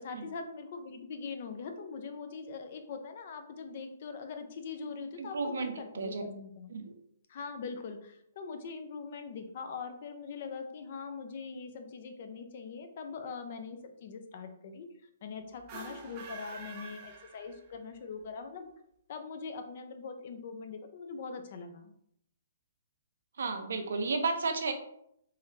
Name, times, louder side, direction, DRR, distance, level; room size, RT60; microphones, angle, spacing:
voice 1, 0.0-6.7 7.3-18.7 19.1-21.9, left 5 dB, 50° left, 6 dB, 0.6 m, -42 dB
voice 2, 5.2-6.2 6.7-6.9 23.4-24.7, right 4 dB, 75° right, 6 dB, 0.6 m, -33 dB
sound 1, 15.6-17.9, right 4 dB, 30° right, 0.6 m, -47 dB
3.8 x 2.7 x 3.2 m, 0.74 s
hypercardioid pair, 155°, 0 cm